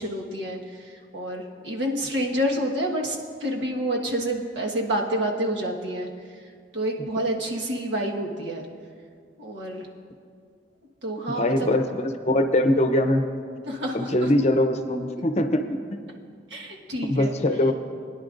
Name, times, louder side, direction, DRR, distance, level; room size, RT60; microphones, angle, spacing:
voice 1, 0.0-6.4 6.7-8.6 9.4-9.9 11.0-11.8 13.6-14.3 16.5-17.3, right 1 dB, 75° right, -1 dB, 1.5 m, -28 dB
voice 2, 11.4-13.2 13.9-15.6 17.1-17.7, left 1 dB, 40° left, 7 dB, 0.7 m, -22 dB
22.0 x 10.5 x 2.6 m, 2.1 s
head